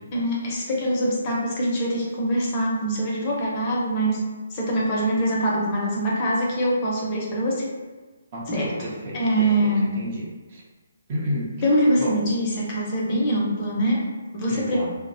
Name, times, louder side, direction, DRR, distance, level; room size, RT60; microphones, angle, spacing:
voice 1, 0.1-4.2 4.5-7.7 8.5-10.0 11.6-14.9, equal, 30° left, -3 dB, 0.6 m, -24 dB
voice 2, 8.3-10.6 11.1-11.5 12.0-12.2 14.5-14.9, equal, 35° right, -4 dB, 0.6 m, -32 dB
2.7 x 2.0 x 2.6 m, 1.3 s
hypercardioid pair, 160°, 0 cm